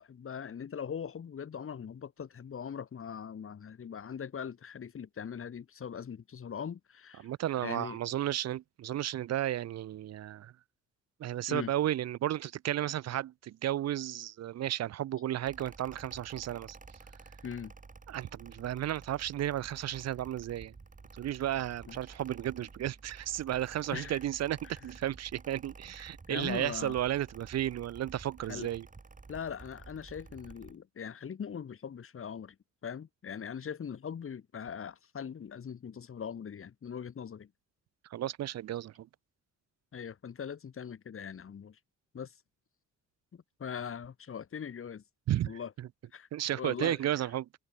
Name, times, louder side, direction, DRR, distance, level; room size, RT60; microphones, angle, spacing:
voice 1, 0.0-7.3 7.6-8.0 11.5-11.7 17.4-17.7 21.9-22.0 23.9-24.2 26.0-27.0 28.5-28.7 29.3-32.6 32.8-37.5 39.9-41.8 42.1-42.3 43.3-45.0 45.4-45.7 46.1-47.2, left 7 dB, 45° left, 2.8 m, -41 dB
voice 2, 7.2-10.5 11.2-16.8 18.1-20.7 21.2-28.9 38.1-39.1 45.3-45.5 45.8-45.9 46.3-47.5, right 12 dB, 60° right, 0.7 m, -33 dB
Mechanical fan, 15.4-30.8, right 4 dB, 25° right, 7.0 m, -52 dB
cardioid pair, 90°, 30 cm